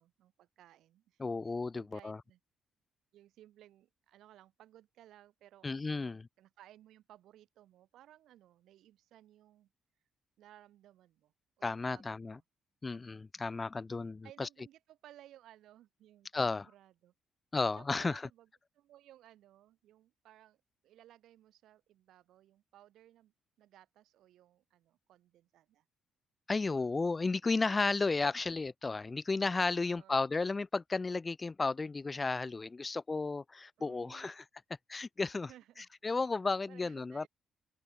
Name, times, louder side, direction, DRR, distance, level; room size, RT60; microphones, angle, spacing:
voice 1, 0.0-1.3 1.7-2.4 3.1-9.7 10.4-12.4 14.2-17.1 17.8-18.5 18.7-25.8 29.8-30.2 33.8-34.3 35.5-35.9 36.7-37.3, right 13 dB, 80° right, 4.8 m, -60 dB
voice 2, 1.2-2.2 5.6-6.3 11.6-12.4 12.8-14.5 16.3-16.6 17.5-18.2 26.5-34.4 34.9-35.5 36.0-37.3, left 3 dB, 25° left, 0.4 m, -33 dB
open air
cardioid pair, 90°, 0 cm